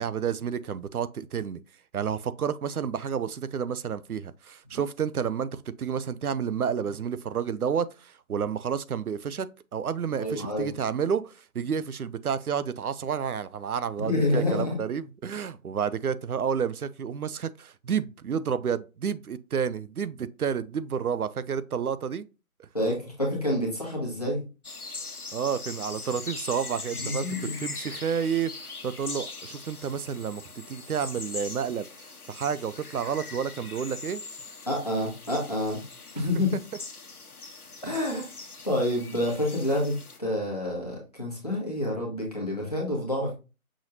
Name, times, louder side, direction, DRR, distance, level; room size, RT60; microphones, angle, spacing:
voice 1, 0.0-1.6 1.9-22.3 22.6-22.7 25.3-27.3 27.6-34.2, right 7 dB, 80° right, 0.5 m, -30 dB
voice 2, 10.2-10.7 14.0-14.8 22.7-24.4 27.0-27.6 34.7-35.8 36.1-36.5 37.8-38.3 38.6-43.3, left 1 dB, 25° left, 1.3 m, -28 dB
sound 1, 24.6-40.2, left 4 dB, 90° left, 1.1 m, -41 dB
6.1 x 3.1 x 2.6 m
figure-of-eight pair, 175°, 44 cm